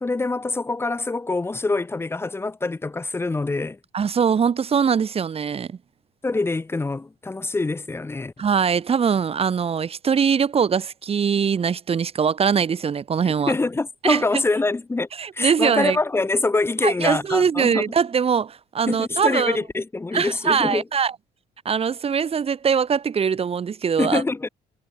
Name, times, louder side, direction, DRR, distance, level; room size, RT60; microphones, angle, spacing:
voice 1, 0.0-3.8 6.2-8.3 13.5-15.1 15.3-17.8 18.9-20.8 24.0-24.5, left 3 dB, 15° left, 0.8 m, -25 dB
voice 2, 3.9-5.8 8.4-13.5 14.0-14.2 15.2-16.0 16.8-19.6 20.1-21.1 21.7-24.2, right 6 dB, 35° right, 1.7 m, -22 dB
cardioid pair, 110°, 17 cm